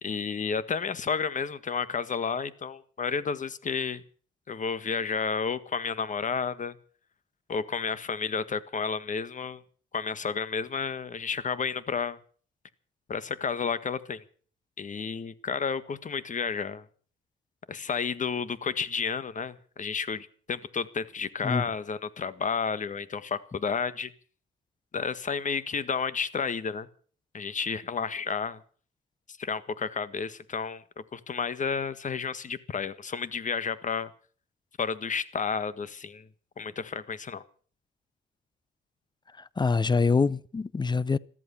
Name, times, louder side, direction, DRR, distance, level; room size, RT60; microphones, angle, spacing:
voice 1, 0.0-4.0 4.5-6.7 7.5-9.6 9.9-12.2 13.1-14.2 14.8-16.8 17.7-24.1 24.9-26.9 27.3-28.6 29.4-30.8 31.1-34.1 34.8-36.3 36.6-37.4, left 5 dB, 40° left, 1.5 m, -31 dB
voice 2, 39.4-41.2, left 4 dB, 20° left, 0.7 m, -25 dB
14.0 x 14.0 x 6.9 m
cardioid pair, 90°, 20 cm